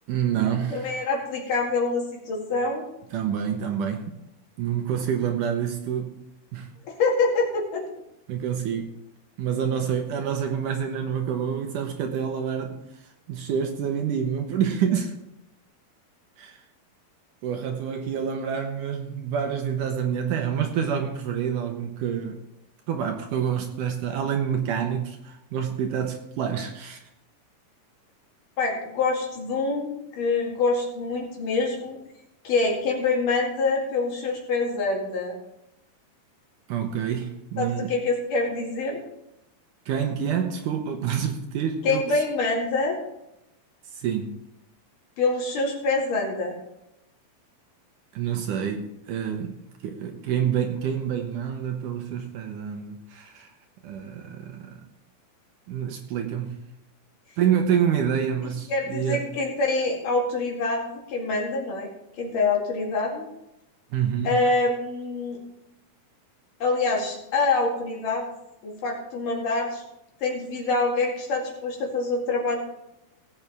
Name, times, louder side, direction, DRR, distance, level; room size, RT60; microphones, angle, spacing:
voice 1, 0.1-1.0 3.1-4.2 4.6-6.2 6.5-6.7 8.3-9.0 9.4-12.8 13.3-15.1 16.4-16.6 17.4-22.4 22.9-27.0 36.7-37.9 39.9-42.0 43.9-44.4 48.1-49.6 49.8-53.5 53.8-54.8 55.7-56.6 57.4-59.3 63.9-64.4, right 8 dB, 75° right, 2.2 m, -27 dB
voice 2, 0.7-2.8 7.0-7.9 28.6-32.0 32.4-35.4 37.6-39.0 41.8-43.0 45.2-46.6 58.7-61.9 62.2-63.3 64.2-65.4 66.6-68.3 68.6-69.8 70.2-72.6, left 3 dB, 65° left, 3.6 m, -25 dB
18.0 x 8.1 x 3.5 m
omnidirectional pair, 4.3 m